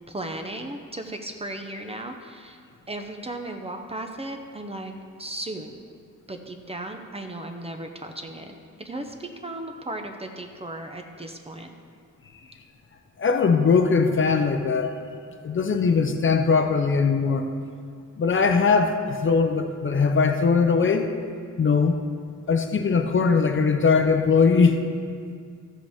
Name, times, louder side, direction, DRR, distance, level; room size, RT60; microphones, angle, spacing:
voice 1, 0.1-2.6 2.9-4.9 5.2-5.8 6.3-11.7, right 1 dB, 20° right, 4 dB, 0.5 m, -36 dB
voice 2, 13.2-15.0 15.4-17.4 18.2-21.1 21.6-22.0 22.5-24.8, left 5 dB, 40° left, 6 dB, 0.5 m, -20 dB
14.0 x 7.5 x 3.5 m, 2.3 s
wide cardioid pair, 175°, 31 cm